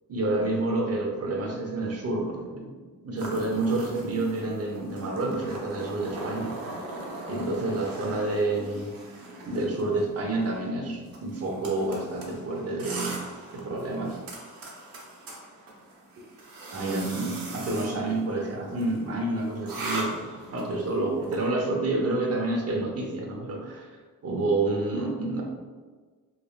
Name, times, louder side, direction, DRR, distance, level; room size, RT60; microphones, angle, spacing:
voice 1, 0.1-2.8 3.0-6.5 7.3-8.9 9.5-13.2 13.5-14.2 16.7-23.9 24.2-25.4, right 2 dB, 45° right, -1 dB, 0.8 m, -29 dB
sound 1, 3.2-21.5, right 2 dB, 75° right, 0.8 m, -40 dB
3.6 x 3.1 x 2.3 m, 1.4 s
wide cardioid pair, 105°, 35 cm